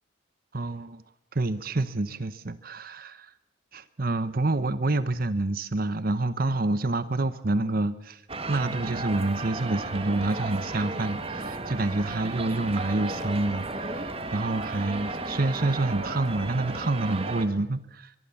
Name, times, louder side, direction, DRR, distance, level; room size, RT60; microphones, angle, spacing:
voice 1, 0.5-1.0 1.3-3.3 3.7-18.1, right 2 dB, 45° right, 14 dB, 0.9 m, -28 dB
sound 1, 8.3-17.5, right 2 dB, 30° right, 2.0 m, -34 dB
23.5 x 23.5 x 7.1 m, 0.77 s
head